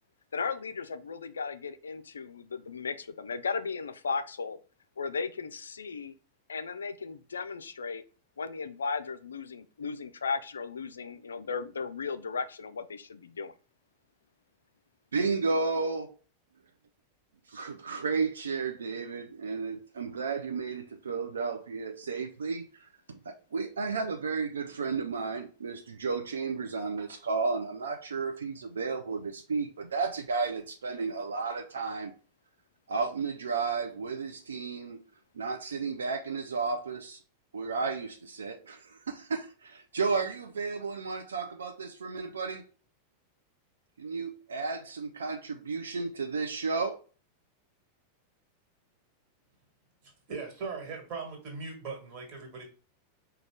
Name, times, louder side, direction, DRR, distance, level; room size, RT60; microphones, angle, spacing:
voice 1, 0.3-4.6 5.0-6.1 6.5-8.0 8.4-13.5, left 5 dB, 70° left, 0.3 m, -36 dB
voice 2, 15.1-16.1 17.5-32.1 32.9-35.0 35.3-37.2 37.5-42.7 44.0-47.0, right 4 dB, 70° right, 0.4 m, -33 dB
voice 3, 50.0-52.6, right 4 dB, 40° right, 1.6 m, -39 dB
4.9 x 2.3 x 3.3 m
figure-of-eight pair, 90°, 0 cm